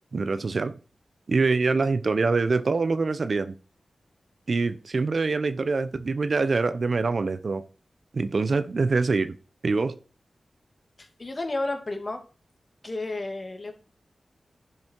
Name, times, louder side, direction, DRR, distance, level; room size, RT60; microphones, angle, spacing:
voice 1, 0.1-0.8 1.3-3.5 4.5-7.6 8.1-9.3 9.6-10.0, right 4 dB, 65° right, 13 dB, 0.8 m, -24 dB
voice 2, 11.0-12.2 12.8-13.7, left 2 dB, 45° left, 5 dB, 2.4 m, -31 dB
10.5 x 6.2 x 4.7 m, 0.37 s
cardioid pair, 45°, 0 cm